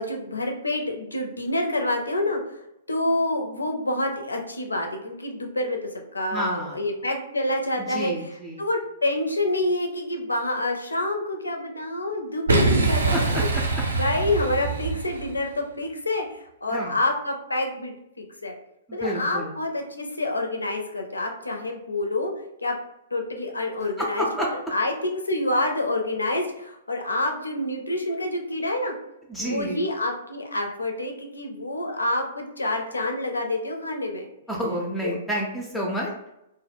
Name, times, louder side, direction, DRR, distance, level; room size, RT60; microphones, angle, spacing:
voice 1, 0.0-2.4 2.9-5.8 6.1-13.5 13.9-18.5 18.9-22.3 22.6-22.7 23.1-24.3 24.7-28.9 29.4-34.3 35.0-35.2, left 1 dB, 80° left, 3 dB, 0.5 m, -27 dB
voice 2, 6.3-6.8 7.8-8.6 13.1-13.8 16.7-17.0 18.9-19.5 23.8-24.5 29.3-29.8 34.5-36.3, right 1 dB, 5° left, -3 dB, 0.4 m, -30 dB
Boom, 12.5-15.5, right 3 dB, 75° right, 0.4 m, -24 dB
2.1 x 2.0 x 3.3 m, 0.86 s
figure-of-eight pair, 115°, 0 cm